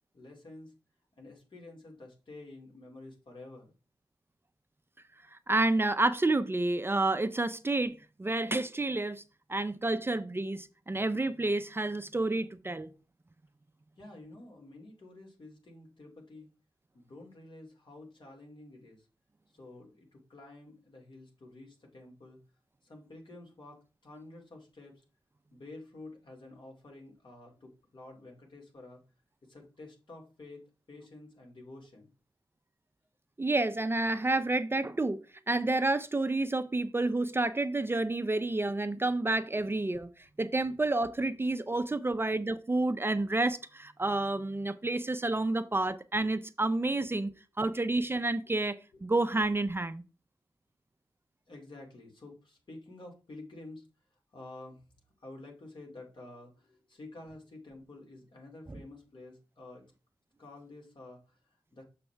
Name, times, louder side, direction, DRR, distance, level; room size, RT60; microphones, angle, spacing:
voice 1, 0.1-0.7 1.2-3.7 14.0-16.5 16.9-19.1 19.5-22.4 22.8-25.0 25.5-29.0 29.5-32.1 40.7-40.8 47.2-47.4 48.9-49.0 51.5-53.9 54.1-54.8 55.2-59.8 60.4-61.8, left 2 dB, 60° left, 2.5 m, -50 dB
voice 2, 5.3-9.2 9.5-12.9 33.4-35.2 35.5-40.1 40.4-50.0, right 2 dB, 25° right, 0.5 m, -29 dB
7.1 x 5.8 x 3.3 m
cardioid pair, 60°, 9 cm